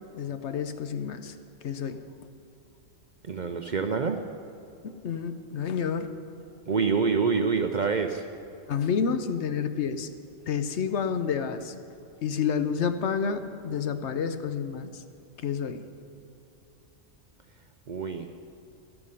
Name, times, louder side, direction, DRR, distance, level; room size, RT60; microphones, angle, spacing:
voice 1, 0.1-1.3 1.6-2.0 4.8-6.1 8.7-10.1 10.5-11.7 12.2-15.0 15.4-15.8, left 6 dB, 65° left, 10 dB, 1.0 m, -29 dB
voice 2, 3.2-4.2 6.7-8.2 17.9-18.3, right 5 dB, 50° right, 6 dB, 0.6 m, -26 dB
13.5 x 12.5 x 5.6 m, 2.7 s
omnidirectional pair, 1.3 m